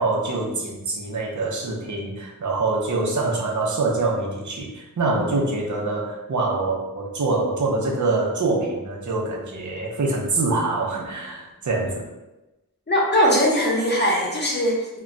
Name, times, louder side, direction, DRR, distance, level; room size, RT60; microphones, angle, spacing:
voice 1, 0.0-12.1, right 3 dB, 60° right, -1 dB, 0.6 m, -25 dB
voice 2, 12.9-15.0, equal, 30° left, -4 dB, 0.8 m, -20 dB
2.2 x 2.2 x 3.8 m, 1.0 s
wide cardioid pair, 95°, 34 cm